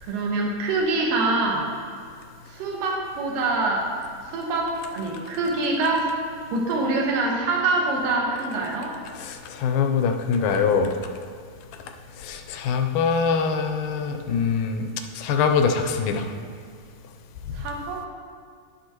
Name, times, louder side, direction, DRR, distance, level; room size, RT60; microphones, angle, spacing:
voice 1, 0.0-1.7 2.5-3.9 4.3-6.2 6.5-8.9 17.5-18.1, right 2 dB, 70° right, 0 dB, 2.6 m, -25 dB
voice 2, 9.2-10.9 12.2-14.9 15.2-16.3, left 6 dB, 80° left, 4 dB, 2.0 m, -23 dB
10.5 x 7.9 x 2.9 m, 2.2 s
omnidirectional pair, 4.1 m